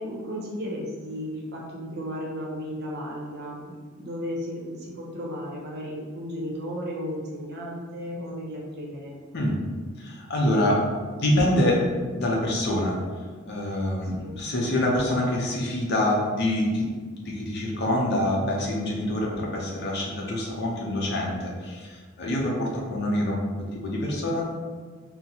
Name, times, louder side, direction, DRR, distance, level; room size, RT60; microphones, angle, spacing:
voice 1, 0.0-9.2 14.2-14.4, equal, 50° right, -3 dB, 0.7 m, -34 dB
voice 2, 10.0-11.8 12.1-13.0 13.5-16.9 17.2-24.5, left 1 dB, 50° left, -3 dB, 0.6 m, -26 dB
3.9 x 2.0 x 2.8 m, 1.5 s
head